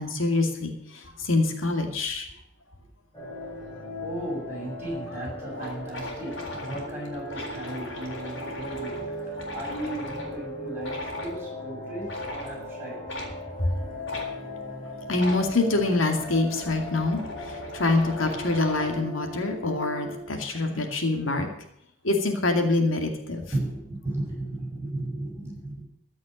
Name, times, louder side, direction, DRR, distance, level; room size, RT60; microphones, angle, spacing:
voice 1, 0.0-2.3 13.6-13.7 15.1-21.5 22.0-23.4, left 2 dB, 90° left, 4 dB, 2.3 m, -25 dB
sound 1, 3.1-20.2, left 1 dB, 20° left, 5.8 m, -38 dB
voice 2, 4.0-13.2 20.5-20.9 23.5-25.8, right 1 dB, 10° right, -5 dB, 6.7 m, -35 dB
sound 2, 4.8-4.9 5.2-5.3 5.5-10.3 10.8-11.4 12.0-12.5 13.1-13.3 14.0-14.3 15.1-15.5 16.2-19.0, left 2 dB, 70° left, 3.8 m, -39 dB
14.5 x 6.3 x 10.0 m, 0.72 s
head